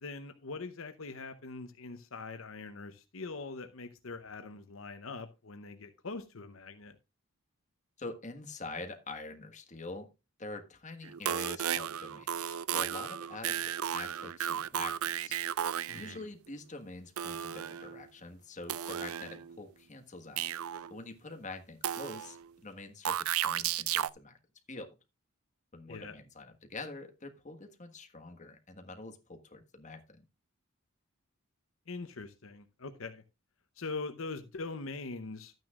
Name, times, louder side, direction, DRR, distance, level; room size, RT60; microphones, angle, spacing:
voice 1, 0.0-6.9 15.9-16.2 25.9-26.2 31.9-33.2 33.8-35.5, left 3 dB, 70° left, 0.8 m, -42 dB
voice 2, 8.0-10.1 10.4-15.4 15.9-20.5 20.9-24.4 24.7-24.9 25.7-30.0, left 2 dB, 35° left, 1.5 m, -45 dB
sound 1, 11.0-16.2 17.2-18.0 18.7-19.6 20.4-21.0 21.8-22.5 23.0-24.1, right 10 dB, 85° right, 0.4 m, -34 dB
12.5 x 9.2 x 2.4 m
head